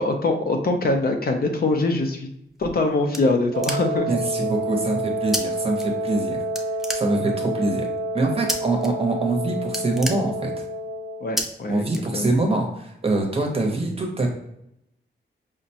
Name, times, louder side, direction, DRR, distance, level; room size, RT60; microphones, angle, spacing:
voice 1, 0.0-2.3 2.6-4.1 11.2-11.8 12.1-12.4, left 2 dB, 50° left, 4 dB, 0.5 m, -23 dB
sound 1, 2.5-4.2 5.3-5.4 5.7-6.3 6.5-7.5 8.5-8.9 9.2-9.4 9.6-10.8 11.4-11.5 11.9-12.5, equal, ahead, 0.3 m, -30 dB
Wind instrument woodwind instrument, 3.5-11.4, right 1 dB, 75° right, 0.4 m, -29 dB
voice 2, 4.1-6.4 6.9-7.9 8.1-10.5 11.7-14.3, right 2 dB, 30° right, 2 dB, 0.7 m, -24 dB
4.9 x 2.1 x 2.7 m, 0.81 s
wide cardioid pair, 145°, 20 cm